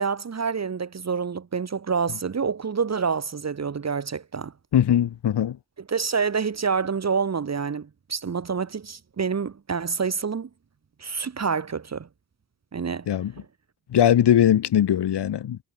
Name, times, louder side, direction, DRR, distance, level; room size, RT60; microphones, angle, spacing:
voice 1, 0.0-4.5 5.9-10.5 11.0-12.1 12.7-13.1 13.4-13.5, right 5 dB, 40° right, 1.9 m, -27 dB
voice 2, 4.7-5.6 13.1-13.3 13.9-15.6, left 10 dB, 75° left, 4.4 m, -20 dB
cardioid pair, 70°, 41 cm